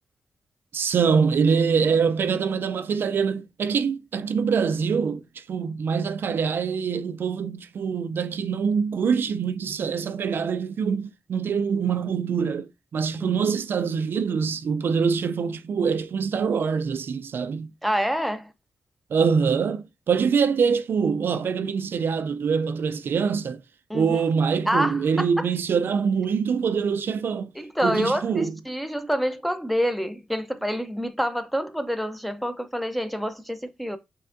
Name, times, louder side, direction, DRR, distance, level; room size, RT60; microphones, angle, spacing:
voice 1, 0.7-17.7 19.1-23.6 23.9-27.5 27.8-28.6, right 6 dB, 60° right, 0.3 m, -24 dB
voice 2, 17.8-18.5 23.9-24.2 24.7-25.5 27.6-34.0, equal, ahead, 0.6 m, -27 dB
5.6 x 3.5 x 2.5 m
cardioid pair, 70°, 4 cm